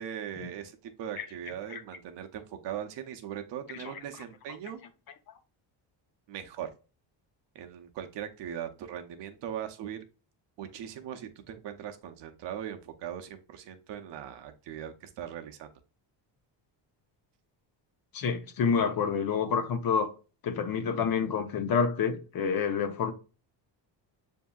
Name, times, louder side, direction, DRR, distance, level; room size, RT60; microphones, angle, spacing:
voice 1, 0.0-4.8 6.3-6.7 7.5-10.0 10.6-15.7, right 9 dB, 65° right, 0.8 m, -40 dB
voice 2, 18.1-20.1 20.4-23.1, left 6 dB, 50° left, 0.8 m, -28 dB
6.8 x 2.7 x 2.3 m
cardioid pair, 135°, 45 cm